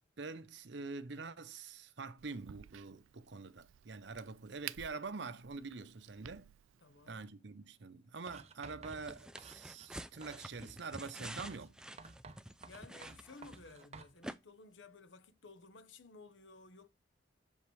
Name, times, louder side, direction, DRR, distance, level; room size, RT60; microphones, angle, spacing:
voice 1, 0.2-6.5 7.1-11.8, right 4 dB, 65° right, 0.7 m, -45 dB
Crack, 2.2-7.2, right 12 dB, 85° right, 0.4 m, -53 dB
voice 2, 6.8-7.2 12.6-16.9, left 3 dB, 70° left, 0.9 m, -56 dB
Writing, 8.3-9.9 10.2-10.8 11.4-14.2, right 3 dB, 35° right, 0.7 m, -54 dB
sound 1, 8.9-13.9 14.2-14.4, right 1 dB, 5° right, 0.3 m, -49 dB
7.2 x 5.2 x 3.2 m
head